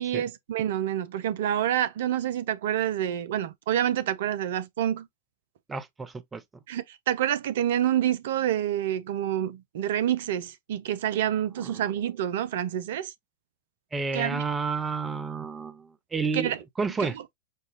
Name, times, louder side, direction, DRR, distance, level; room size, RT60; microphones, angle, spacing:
voice 1, 0.0-5.1 6.7-13.1 14.1-14.4 16.3-16.6 17.0-17.1, right 11 dB, 55° right, 0.6 m, -27 dB
voice 2, 5.7-6.4 11.6-11.8 13.9-17.2, right 4 dB, 15° right, 0.8 m, -31 dB
6.6 x 2.4 x 2.9 m
figure-of-eight pair, 90°, 0 cm